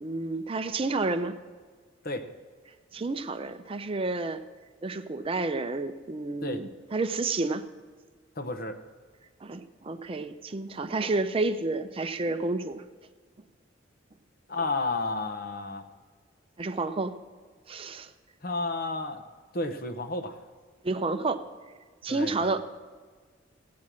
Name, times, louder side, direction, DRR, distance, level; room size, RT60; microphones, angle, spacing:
voice 1, 0.0-1.3 2.9-4.4 4.8-7.6 9.4-12.8 16.6-17.2 17.7-18.1 20.8-21.4 22.0-22.6, right 3 dB, 30° right, 9 dB, 0.5 m, -30 dB
voice 2, 8.3-8.7 14.5-15.8 18.4-19.2 19.5-20.4 22.1-22.6, left 2 dB, 50° left, 7 dB, 1.0 m, -32 dB
16.0 x 8.5 x 6.2 m, 1.5 s
head